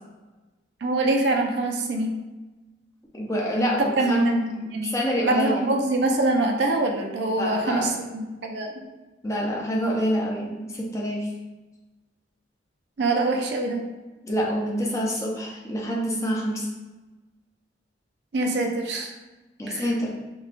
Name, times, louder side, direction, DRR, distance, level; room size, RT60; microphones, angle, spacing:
voice 1, 0.8-2.1 3.8-5.0 5.2-8.7 13.0-13.8 18.3-19.1 19.7-19.8, right 2 dB, 65° right, 2 dB, 0.4 m, -24 dB
voice 2, 3.1-4.4 4.6-5.7 7.4-7.9 9.2-11.3 14.2-16.7 19.6-20.1, equal, 15° left, -3 dB, 0.5 m, -26 dB
3.8 x 2.2 x 2.5 m, 1.1 s
head